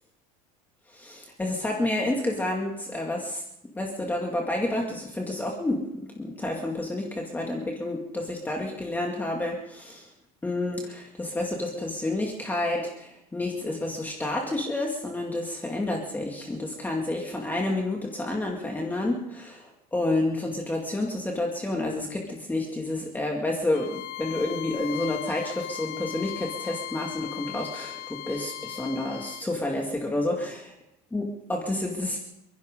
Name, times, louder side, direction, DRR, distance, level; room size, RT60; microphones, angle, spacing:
voice 1, 0.9-3.4 3.8-5.8 6.2-10.1 10.4-30.7 31.1-32.2, left 2 dB, 10° left, 0 dB, 2.2 m, -29 dB
Bowed string instrument, 23.7-29.5, left 14 dB, 55° left, 0.8 m, -38 dB
29.0 x 10.5 x 3.8 m, 0.80 s
supercardioid pair, 130°, 18 cm